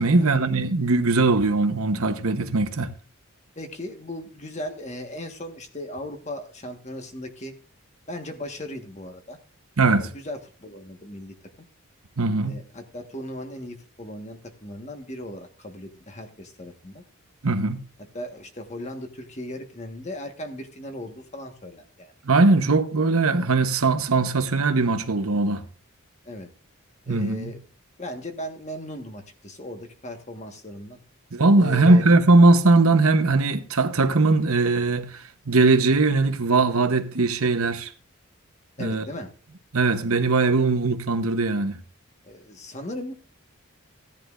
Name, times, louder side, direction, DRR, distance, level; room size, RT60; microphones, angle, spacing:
voice 1, 0.0-2.9 9.8-10.1 12.2-12.6 17.4-17.8 22.2-25.6 27.1-27.5 31.3-37.9 38.8-39.1 39.7-41.8, right 3 dB, 80° right, 1.0 m, -20 dB
voice 2, 3.5-7.5 8.1-9.4 10.0-11.3 12.4-17.0 18.1-22.4 26.2-26.5 27.1-27.6 28.0-31.0 31.6-32.1 38.8-39.3 42.2-43.1, left 1 dB, 30° left, 1.5 m, -37 dB
16.0 x 10.5 x 2.6 m
head